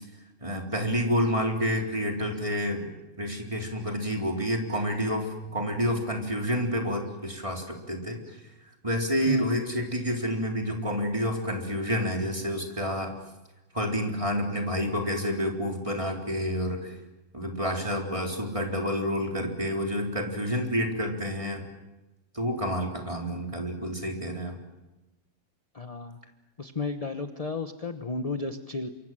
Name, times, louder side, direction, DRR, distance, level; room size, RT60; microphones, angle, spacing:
voice 1, 0.4-2.9 3.2-8.4 8.8-13.1 13.7-16.9 17.3-21.6 22.3-24.6, equal, 25° right, 1 dB, 4.0 m, -29 dB
voice 2, 25.7-26.2 26.6-28.9, left 3 dB, 30° left, 7 dB, 1.1 m, -33 dB
27.0 x 25.0 x 7.6 m, 1.1 s
omnidirectional pair, 1.4 m